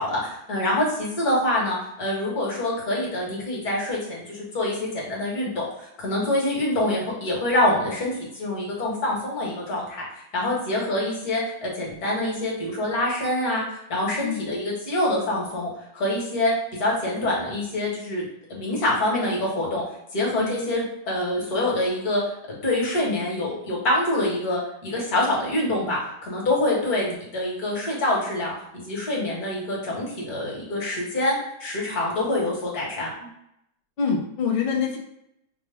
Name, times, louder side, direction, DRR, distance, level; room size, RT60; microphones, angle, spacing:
voice 1, 0.0-5.7 6.0-10.0 10.3-16.5 16.8-19.8 20.1-22.2 22.6-33.1, left 1 dB, 55° left, -3 dB, 1.7 m, -25 dB
voice 2, 34.0-35.0, left 6 dB, 80° left, -1 dB, 0.4 m, -25 dB
5.7 x 2.0 x 3.4 m, 0.78 s
omnidirectional pair, 2.0 m